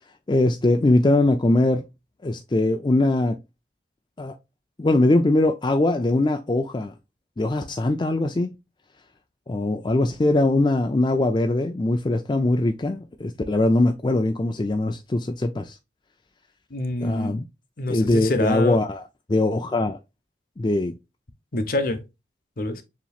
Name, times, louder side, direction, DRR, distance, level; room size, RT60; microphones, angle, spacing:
voice 1, 0.3-1.8 2.2-3.4 4.2-4.3 4.8-6.9 7.4-8.5 9.5-15.8 17.0-17.4 17.9-19.0 19.3-20.0 20.6-20.9, left 2 dB, 25° left, 0.4 m, -21 dB
voice 2, 16.7-17.4 17.8-18.8 21.5-22.0 22.6-22.8, left 2 dB, 55° left, 0.8 m, -26 dB
6.9 x 3.0 x 2.3 m
head